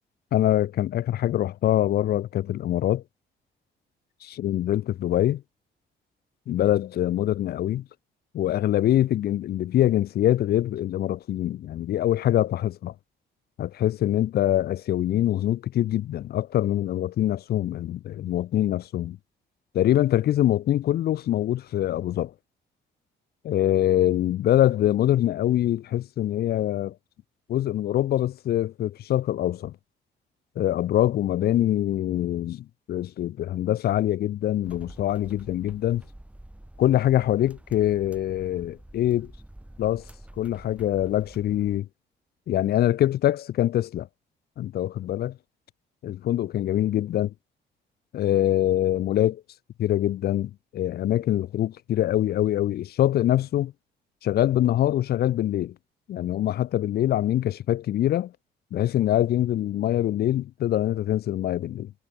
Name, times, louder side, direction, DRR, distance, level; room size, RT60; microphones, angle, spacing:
voice 1, 0.3-3.0 4.2-5.4 6.5-7.8 8.3-12.9 13.6-19.2 19.7-22.3 23.4-26.9 27.5-29.7 30.6-36.0 36.8-39.3 39.8-40.0 40.4-41.9 42.5-44.1 44.6-45.4 46.0-47.3 48.1-49.4 49.8-53.7 54.2-55.7 56.1-58.3 58.7-61.9, left 12 dB, 55° left, 0.4 m, -24 dB
sound 1, 34.6-41.8, right 1 dB, 5° right, 2.5 m, -48 dB
cardioid pair, 90°, 20 cm